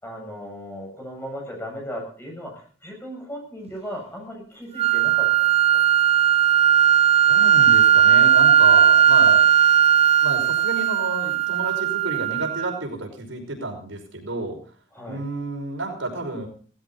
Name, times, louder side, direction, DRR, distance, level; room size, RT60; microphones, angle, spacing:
voice 1, 0.0-5.7 14.9-15.2, equal, 10° left, 0 dB, 7.4 m, -36 dB
sound 1, 4.8-12.8, right 9 dB, 35° right, 0.6 m, -17 dB
voice 2, 7.3-9.5 10.2-14.6 15.1-16.5, right 2 dB, 85° right, 2 dB, 5.6 m, -30 dB
18.0 x 16.0 x 4.1 m, 0.42 s
head